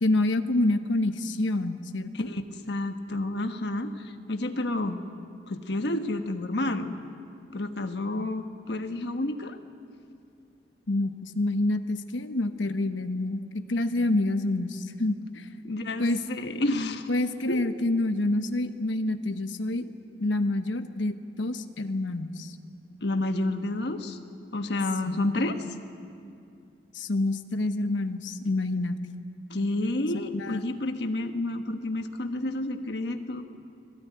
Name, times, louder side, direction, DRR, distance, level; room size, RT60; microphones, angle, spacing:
voice 1, 0.0-2.3 10.9-15.5 16.0-16.2 17.1-19.9 20.2-22.5 25.0-25.2 26.9-29.0 30.3-30.6, left 2 dB, 90° left, 9 dB, 1.1 m, -27 dB
voice 2, 2.1-5.0 5.5-6.9 7.5-9.6 15.6-17.1 17.5-17.6 23.0-24.2 24.5-25.6 29.5-33.4, left 2 dB, 65° left, 7 dB, 1.3 m, -30 dB
24.5 x 17.0 x 9.4 m, 2.5 s
head